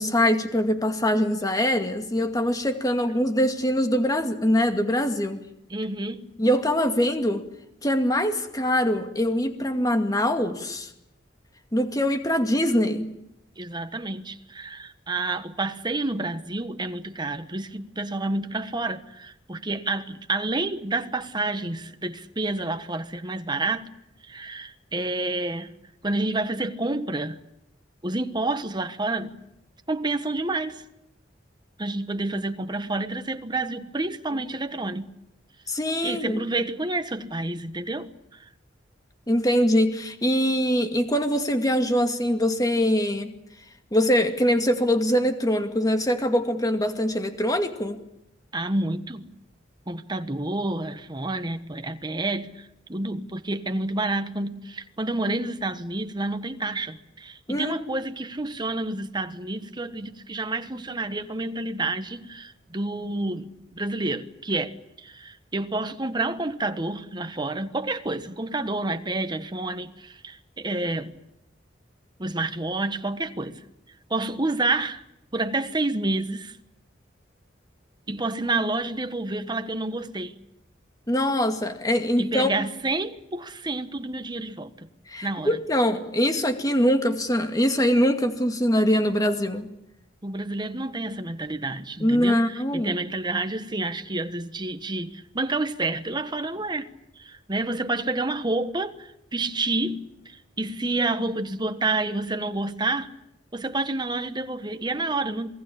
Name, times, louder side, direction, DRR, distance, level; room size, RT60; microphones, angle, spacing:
voice 1, 0.0-5.4 6.4-7.4 7.8-10.9 11.7-13.1 35.7-36.4 39.3-43.3 43.9-48.0 57.5-57.8 81.1-82.7 85.1-89.7 92.0-92.9, equal, 20° left, 2.3 m, -23 dB
voice 2, 5.7-6.3 13.6-23.9 24.3-25.7 26.0-27.4 28.0-29.4 29.9-30.8 31.8-35.1 36.0-38.5 48.5-49.3 49.9-71.1 72.2-73.6 74.1-75.0 75.3-76.6 78.1-80.4 82.2-84.9 85.2-85.6 90.2-96.9 97.2-103.1 103.5-105.5, right 2 dB, 25° right, 1.3 m, -29 dB
28.0 x 20.0 x 8.8 m
head